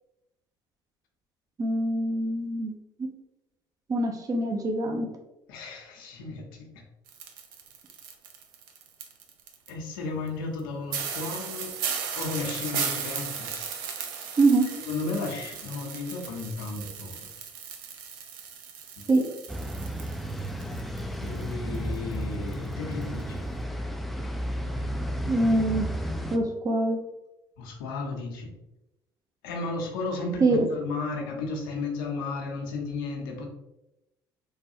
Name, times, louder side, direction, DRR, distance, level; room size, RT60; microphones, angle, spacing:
voice 1, 1.6-2.7 3.0-3.1 3.9-5.1 14.4-14.7 19.1-19.2 25.3-25.9 26.3-27.0 30.4-30.7, right 2 dB, 35° right, 2 dB, 0.6 m, -24 dB
voice 2, 5.5-6.7 9.7-11.7 12.1-13.5 14.9-17.3 19.0-19.1 21.2-23.5 27.6-28.5 29.4-33.5, left 3 dB, 80° left, 1 dB, 0.6 m, -34 dB
sound 1, 7.1-9.7 10.3-10.4 10.6-10.7 10.9-21.0 21.3-22.2 22.5-22.7 23.0-23.2, right 7 dB, 80° right, 0.4 m, -36 dB
sound 2, 19.5-26.4, equal, ahead, 0.3 m, -33 dB
3.3 x 2.3 x 2.7 m, 0.92 s
hypercardioid pair, 65°, 11 cm